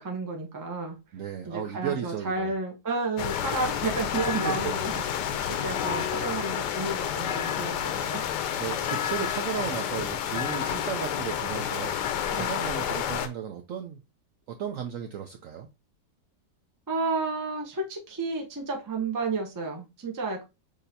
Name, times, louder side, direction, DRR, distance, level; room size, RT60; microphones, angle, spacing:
voice 1, 0.0-1.0 1.5-4.9 5.6-8.2 10.7-10.8 12.3-12.5 16.9-20.4, right 3 dB, 25° right, 0.4 m, -31 dB
voice 2, 1.1-2.5 4.3-4.7 6.1-6.4 8.6-14.0 14.5-15.7, right 9 dB, 70° right, 0.7 m, -35 dB
sound 1, 3.2-13.3, left 9 dB, 75° left, 1.1 m, -30 dB
6.4 x 2.8 x 2.7 m
omnidirectional pair, 1.9 m